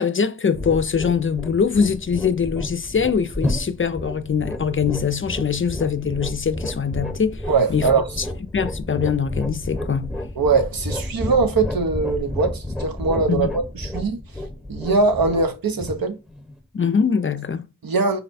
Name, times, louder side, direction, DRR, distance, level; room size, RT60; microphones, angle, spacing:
voice 1, 0.0-7.4 7.7-7.9 8.5-10.1 13.3-13.5 16.7-17.7, left 6 dB, 35° left, 0.4 m, -22 dB
sound 1, 0.5-17.0, left 1 dB, ahead, 0.9 m, -31 dB
voice 2, 7.5-8.2 10.4-14.2 14.7-16.2 17.8-18.2, right 4 dB, 75° right, 0.7 m, -21 dB
4.0 x 2.2 x 4.0 m
cardioid pair, 40°, 35 cm